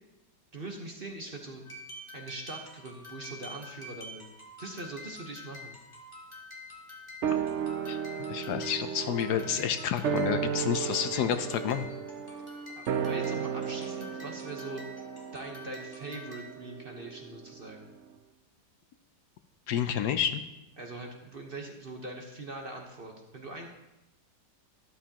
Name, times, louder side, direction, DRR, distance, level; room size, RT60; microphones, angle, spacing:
voice 1, 0.5-1.6 2.1-4.3 4.6-5.7 12.8-14.8 15.3-17.9 20.8-23.7, right 2 dB, 35° right, 1 dB, 1.2 m, -42 dB
sound 1, 1.6-16.7, left 1 dB, 15° left, 2.2 m, -48 dB
sound 2, 7.2-17.8 18.1-18.2, right 7 dB, 70° right, 0.6 m, -35 dB
voice 2, 8.3-11.9 19.7-20.4, left 9 dB, 75° left, 9 dB, 1.2 m, -29 dB
13.0 x 11.5 x 2.9 m, 0.98 s
omnidirectional pair, 1.9 m